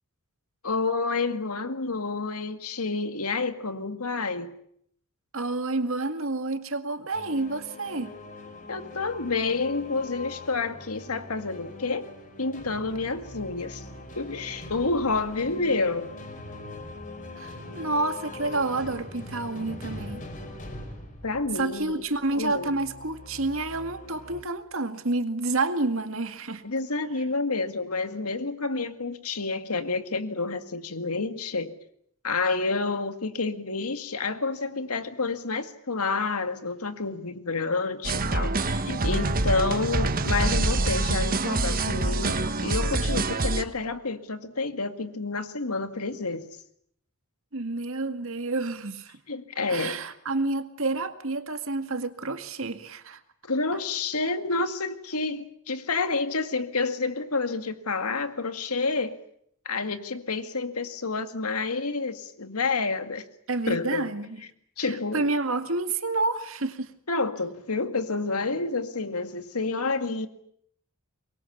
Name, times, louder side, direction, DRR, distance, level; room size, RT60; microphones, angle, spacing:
voice 1, 0.6-4.6 8.7-12.1 12.4-13.9 14.1-16.1 21.2-22.0 22.3-22.8 26.6-31.8 32.2-46.6 49.3-50.0 53.5-59.2 59.7-63.2 63.7-64.1 64.8-65.3 67.1-70.3, left 3 dB, 85° left, 2.1 m, -29 dB
voice 2, 5.3-8.1 17.4-20.3 21.6-26.6 47.5-49.1 49.7-53.2 63.5-64.4 64.9-66.9, right 2 dB, 65° right, 2.1 m, -29 dB
sound 1, 7.1-24.4, left 2 dB, 40° left, 5.3 m, -42 dB
sound 2, 38.0-43.6, right 2 dB, 40° right, 1.4 m, -26 dB
24.5 x 22.5 x 8.5 m
head